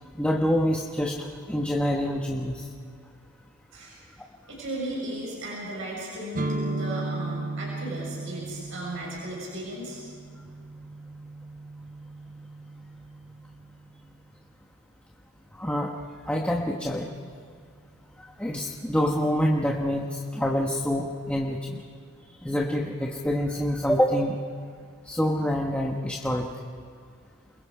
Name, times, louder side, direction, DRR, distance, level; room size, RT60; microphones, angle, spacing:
voice 1, 0.2-2.7 15.5-15.9 16.3-17.1 18.4-21.8 22.4-24.4 25.1-26.5, equal, 5° left, -1 dB, 1.2 m, -26 dB
voice 2, 4.5-10.0, right 1 dB, 60° right, -4 dB, 6.6 m, -35 dB
sound 1, 6.3-14.1, right 2 dB, 40° right, 0.6 m, -36 dB
28.5 x 22.0 x 4.9 m, 2.2 s
head